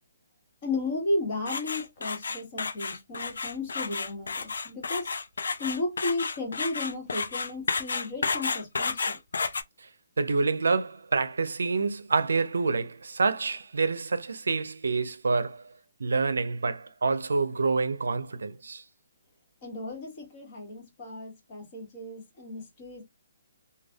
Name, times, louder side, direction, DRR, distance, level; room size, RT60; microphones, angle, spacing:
voice 1, 0.6-5.1 5.6-9.2 19.6-23.0, left 2 dB, 35° left, 1.3 m, -34 dB
sound 1, 1.5-9.6, left 4 dB, 80° left, 0.4 m, -31 dB
voice 2, 10.2-15.7 16.0-18.8, right 4 dB, 85° right, 0.4 m, -27 dB
3.2 x 2.3 x 2.2 m
hypercardioid pair, 160°, 0 cm